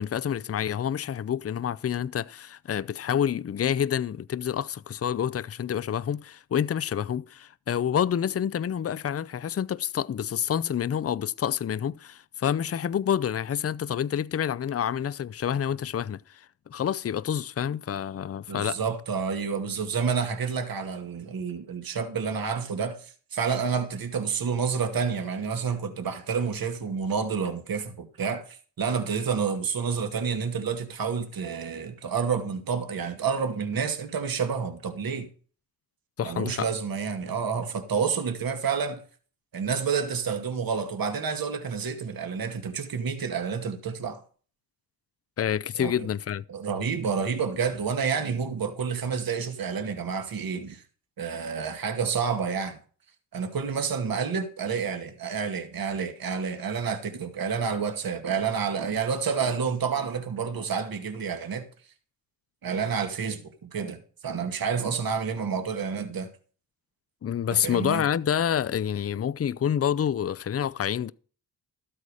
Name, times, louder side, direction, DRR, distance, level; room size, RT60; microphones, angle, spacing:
voice 1, 0.0-18.8 36.2-36.7 45.4-46.4 67.2-71.1, left 9 dB, 35° left, 0.6 m, -28 dB
voice 2, 18.5-35.3 36.2-39.0 39.5-44.2 45.8-45.9 46.5-50.8 51.2-52.8 53.3-61.6 62.6-66.3 67.5-68.0, right 6 dB, 60° right, 2.1 m, -29 dB
13.0 x 8.5 x 4.9 m
supercardioid pair, 50°, 39 cm